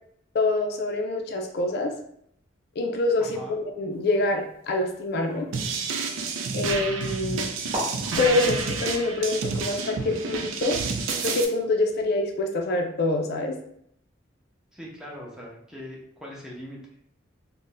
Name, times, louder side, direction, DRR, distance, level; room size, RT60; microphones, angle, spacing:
voice 1, 0.3-1.9 2.8-5.5 6.5-7.5 8.2-10.8 11.2-13.6, left 2 dB, 55° left, 3 dB, 0.4 m, -26 dB
voice 2, 3.2-3.6 14.7-16.8, equal, 5° right, -4 dB, 0.6 m, -41 dB
sound 1, 3.9-6.8 7.4-7.5 7.7-12.3, equal, 35° right, 1.0 m, -41 dB
sound 2, 5.5-11.4, right 4 dB, 90° right, 0.4 m, -29 dB
2.5 x 2.1 x 3.8 m, 0.70 s
head